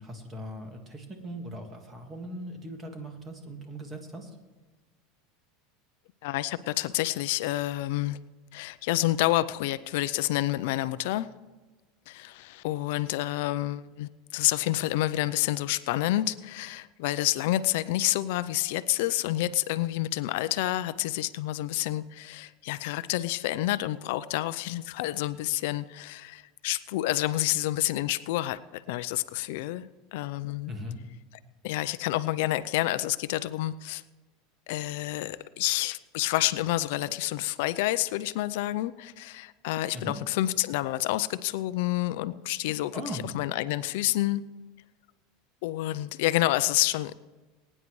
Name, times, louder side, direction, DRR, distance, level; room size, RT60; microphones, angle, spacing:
voice 1, 0.0-4.3 30.7-31.0 39.9-40.1 42.9-43.2, equal, 20° right, 4 dB, 1.8 m, -39 dB
voice 2, 6.2-8.2 8.5-11.3 12.1-30.7 31.6-34.0 34.7-44.4 45.6-47.1, left 16 dB, 70° left, 15 dB, 0.4 m, -29 dB
21.5 x 9.7 x 3.2 m, 1.3 s
supercardioid pair, 155°, 0 cm